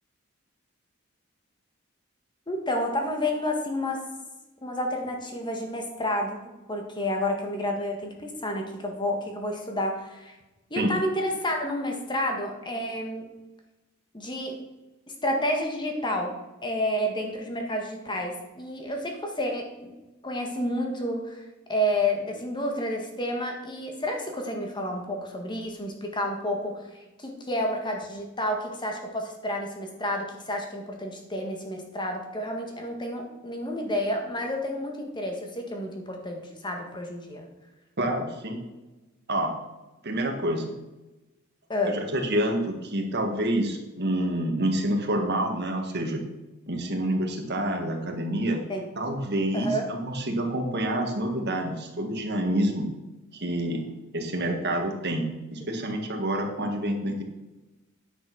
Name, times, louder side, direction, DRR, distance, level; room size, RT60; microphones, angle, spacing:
voice 1, 2.5-4.0 4.6-10.4 10.7-13.3 14.1-14.6 15.2-16.3 16.6-19.9 20.2-37.5 41.7-42.0 48.7-48.9 49.5-49.8, left 1 dB, 20° left, 2 dB, 1.7 m, -30 dB
voice 2, 38.0-38.6 39.3-39.5 40.0-40.7 41.8-46.2 46.7-48.6 49.0-52.9 53.3-53.9 54.1-55.3 55.5-57.2, right 1 dB, 50° right, 3 dB, 1.9 m, -27 dB
10.0 x 6.2 x 6.2 m, 1.0 s
head